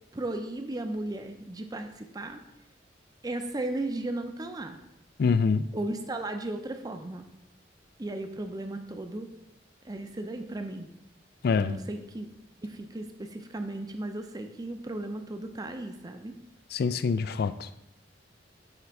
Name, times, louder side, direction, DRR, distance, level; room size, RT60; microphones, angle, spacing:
voice 1, 0.1-2.4 3.2-4.8 5.7-7.2 8.0-9.3 9.8-10.9 11.5-12.3 12.6-16.3, right 2 dB, 20° right, 6 dB, 0.5 m, -35 dB
voice 2, 5.2-5.7 11.4-11.8 16.7-17.7, left 5 dB, 60° left, 13 dB, 0.3 m, -25 dB
9.1 x 3.4 x 4.7 m, 0.85 s
head